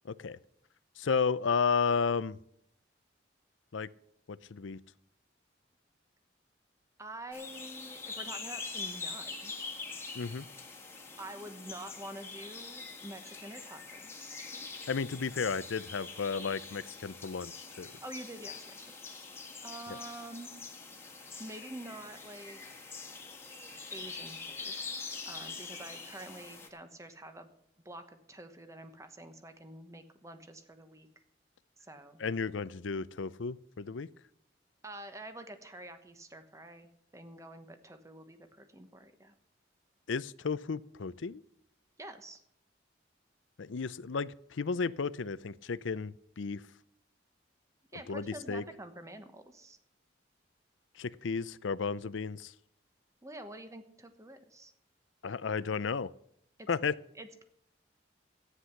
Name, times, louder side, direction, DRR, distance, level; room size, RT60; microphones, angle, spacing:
voice 1, 0.0-0.4 1.0-2.4 3.7-3.9 4.3-4.8 10.1-10.5 14.9-17.9 32.2-34.1 40.1-41.4 43.6-46.6 48.1-48.6 51.0-52.5 55.2-56.1 56.7-57.0, left 5 dB, 90° left, 17 dB, 0.6 m, -33 dB
voice 2, 7.0-9.5 11.2-14.4 17.8-19.3 19.6-20.5 21.4-22.8 23.9-24.8 25.2-27.5 27.8-31.1 31.8-32.2 34.8-39.3 42.0-42.4 47.9-49.8 53.2-54.7 56.6-56.7 57.1-57.4, right 1 dB, 15° right, 8 dB, 1.1 m, -47 dB
sound 1, 7.3-26.7, left 4 dB, 15° left, 1.8 m, -44 dB
14.0 x 9.8 x 5.9 m, 0.72 s
head